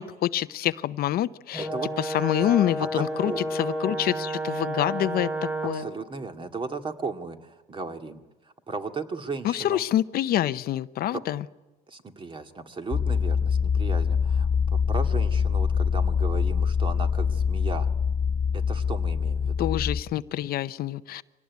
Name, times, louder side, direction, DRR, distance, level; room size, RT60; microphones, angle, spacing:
voice 1, 0.0-1.7 2.0-5.3 5.6-5.9 9.4-11.4 19.6-21.2, left 12 dB, 65° left, 14 dB, 0.7 m, -26 dB
Brass instrument, 1.5-5.9, right 1 dB, 10° right, 5.8 m, -31 dB
voice 2, 1.6-1.9 2.8-3.5 5.7-8.2 8.7-9.8 11.1-11.2 11.9-17.9 18.5-19.7, right 4 dB, 30° right, 6 dB, 2.2 m, -36 dB
sound 1, 12.9-20.0, left 6 dB, 40° left, 1.0 m, -24 dB
25.0 x 18.0 x 9.5 m, 1.2 s
cardioid pair, 110°, 17 cm